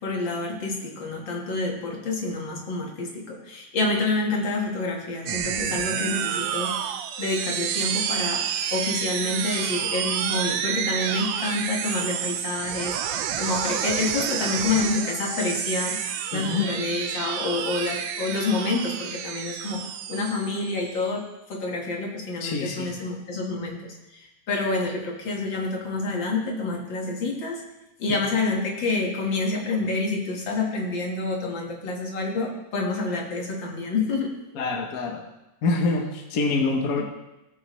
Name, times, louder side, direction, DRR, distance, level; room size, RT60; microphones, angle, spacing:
voice 1, 0.0-6.8 7.2-16.0 16.3-27.6 28.0-34.3, left 3 dB, 70° left, 0 dB, 2.3 m, -28 dB
sound 1, 5.3-21.1, right 9 dB, 75° right, 1.3 m, -29 dB
voice 2, 16.3-16.7 22.4-22.9 28.1-28.2 34.5-35.2 35.6-37.0, left 3 dB, 55° left, 2 dB, 1.2 m, -26 dB
17.5 x 6.7 x 3.1 m, 0.98 s
omnidirectional pair, 2.1 m